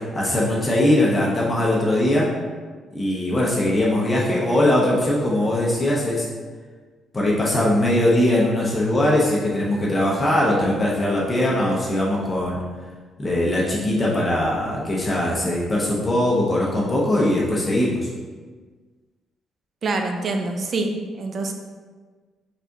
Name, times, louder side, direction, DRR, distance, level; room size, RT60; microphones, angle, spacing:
voice 1, 0.0-2.3 2.9-6.3 7.1-12.6 13.2-18.1, left 1 dB, 25° left, -5 dB, 0.8 m, -21 dB
voice 2, 19.8-21.5, right 3 dB, 50° right, 4 dB, 0.5 m, -25 dB
4.2 x 3.5 x 2.6 m, 1.5 s
cardioid pair, 90°, 0 cm